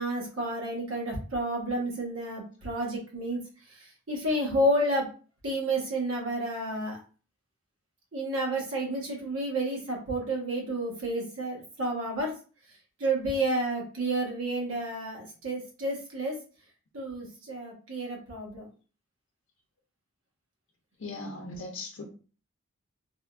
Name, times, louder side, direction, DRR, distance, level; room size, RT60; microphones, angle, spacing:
voice 1, 0.0-3.4 3.7-5.1 5.4-7.0 8.1-12.3 13.0-16.3 16.9-18.7, right 1 dB, 80° right, -1 dB, 1.1 m, -30 dB
voice 2, 21.0-22.0, left 2 dB, 65° left, -1 dB, 0.6 m, -38 dB
3.5 x 2.3 x 2.4 m, 0.37 s
head